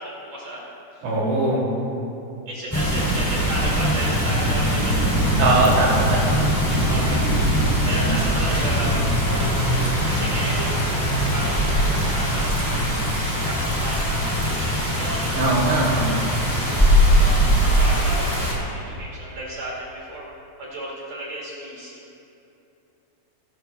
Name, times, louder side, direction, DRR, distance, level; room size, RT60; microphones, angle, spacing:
voice 1, 0.0-1.1 2.5-11.0 11.3-12.8 13.1-16.4 17.1-20.3 20.6-22.0, right 1 dB, 45° right, -5 dB, 3.0 m, -34 dB
voice 2, 1.0-1.6 5.4-6.3 7.8-8.2 15.3-16.2, right 2 dB, 70° right, -6 dB, 5.1 m, -21 dB
sound 1, 2.7-18.5, equal, 10° left, 1.2 m, -21 dB
sound 2, 5.5-12.9, equal, 25° right, 3.0 m, -36 dB
20.5 x 12.5 x 2.3 m, 2.9 s
omnidirectional pair, 5.1 m